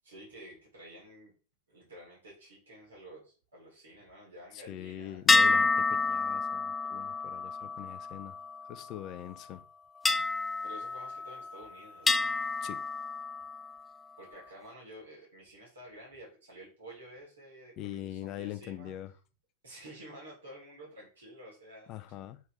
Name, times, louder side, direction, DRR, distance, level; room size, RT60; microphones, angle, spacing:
voice 1, 0.0-1.3 1.7-5.2 10.6-12.3 14.2-18.9 19.6-21.9, right 1 dB, 70° right, 4.1 m, -51 dB
voice 2, 4.5-8.4 8.7-9.6 12.6-12.8 17.8-19.1 21.9-22.4, left 12 dB, 35° left, 0.7 m, -42 dB
sound 1, 5.3-9.0 10.0-11.6 12.1-13.7, left 3 dB, 15° left, 0.4 m, -29 dB
8.1 x 4.5 x 3.6 m
figure-of-eight pair, 90°, 0 cm